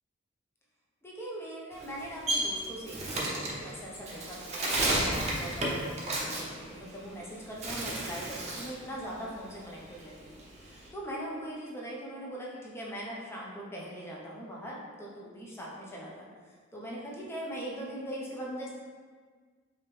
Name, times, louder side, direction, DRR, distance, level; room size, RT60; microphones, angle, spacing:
voice 1, 1.0-16.3 16.7-18.7, right 1 dB, 10° left, -4 dB, 0.7 m, -41 dB
Bird, 1.7-7.2 7.5-8.8 9.1-10.9, right 1 dB, 35° right, 0.7 m, -32 dB
5.1 x 2.9 x 3.1 m, 1.5 s
head